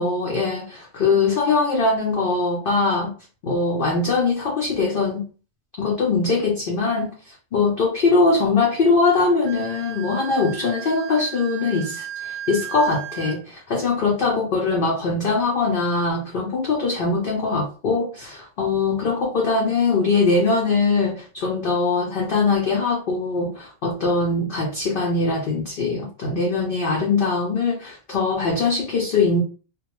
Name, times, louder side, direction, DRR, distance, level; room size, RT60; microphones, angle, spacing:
voice 1, 0.0-3.1 3.4-5.2 5.8-29.4, left 3 dB, 65° left, 0.5 m, -22 dB
Wind instrument woodwind instrument, 9.4-13.4, right 10 dB, 60° right, 0.8 m, -35 dB
2.2 x 2.1 x 2.9 m
omnidirectional pair, 1.4 m